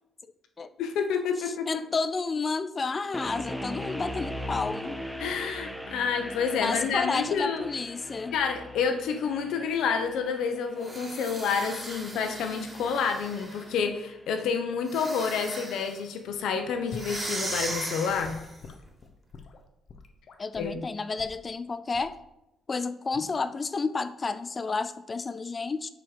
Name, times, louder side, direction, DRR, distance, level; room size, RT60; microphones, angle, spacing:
voice 1, 0.8-1.8 5.2-7.6 8.3-18.4 20.6-20.8, left 6 dB, 80° left, 6 dB, 1.0 m, -29 dB
voice 2, 1.7-5.0 6.6-8.3 20.4-22.2 22.7-25.9, left 4 dB, 35° left, 14 dB, 0.5 m, -31 dB
sound 1, 3.1-14.2, equal, ahead, 0.7 m, -40 dB
sound 2, 10.8-13.8 14.8-16.0 16.9-18.6, right 1 dB, 20° right, 2.7 m, -38 dB
Gurgling / Sink (filling or washing) / Liquid, 16.9-17.2 18.1-20.8 21.2-21.4 21.9-22.2 23.1-23.4, left 4 dB, 55° left, 1.0 m, -45 dB
9.9 x 4.8 x 5.0 m, 0.88 s
cardioid pair, 90°, 0 cm